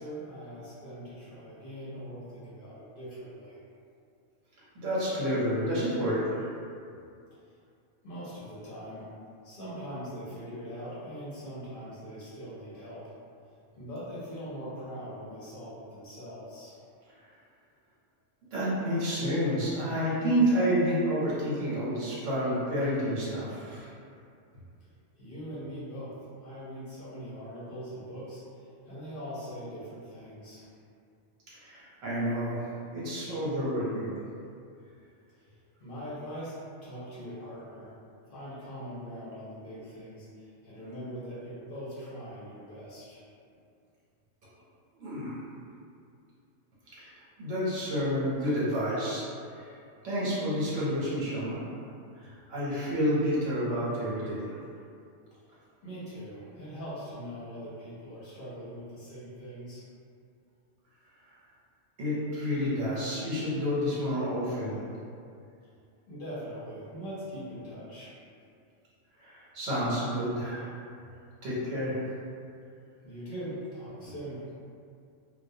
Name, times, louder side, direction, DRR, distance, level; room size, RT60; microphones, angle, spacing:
voice 1, 0.0-3.6 8.0-9.1 9.4-13.0 13.8-16.8 25.2-30.6 35.3-37.9 38.3-43.2 55.8-59.8 66.1-68.1 73.0-74.4, equal, 55° left, -9 dB, 0.7 m, -41 dB
voice 2, 4.7-6.4 18.5-23.9 31.5-34.2 45.0-45.4 46.9-49.3 49.5-49.7 50.0-54.6 62.0-64.8 69.2-70.7 71.4-72.0 74.0-74.1, equal, 80° right, -9 dB, 1.0 m, -30 dB
2.2 x 2.2 x 2.6 m, 2.4 s
omnidirectional pair, 1.3 m